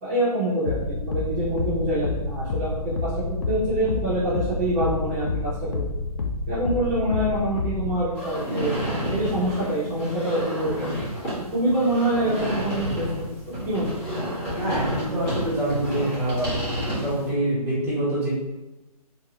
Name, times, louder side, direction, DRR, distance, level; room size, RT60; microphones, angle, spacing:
voice 1, 0.0-5.8 6.5-8.7 9.1-10.9 11.5-13.1 13.7-13.9, right 1 dB, 25° right, -11 dB, 0.7 m, -25 dB
sound 1, 0.7-8.0, left 3 dB, 60° left, 0.5 m, -29 dB
sound 2, 8.1-17.3, equal, 25° left, 1.2 m, -30 dB
voice 2, 14.5-16.5 16.9-18.3, right 1 dB, 10° right, -11 dB, 1.3 m, -25 dB
2.9 x 2.6 x 2.9 m, 1.0 s
hypercardioid pair, 155°, 20 cm